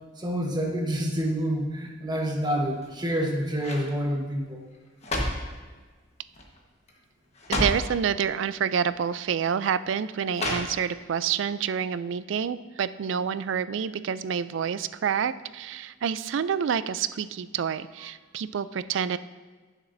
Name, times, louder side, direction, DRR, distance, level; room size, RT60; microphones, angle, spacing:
voice 1, 0.2-4.6, equal, 20° right, 0 dB, 1.2 m, -28 dB
sound 1, 2.7-3.2 3.6-3.9 4.7-5.5 6.3-6.6 6.9-7.0 7.3-7.9 8.9-9.0 10.3-11.1 11.5-11.6, left 1 dB, 35° left, 1.3 m, -30 dB
voice 2, 7.5-19.2, right 7 dB, 65° right, 15 dB, 0.3 m, -28 dB
15.5 x 7.2 x 2.6 m, 1.4 s
head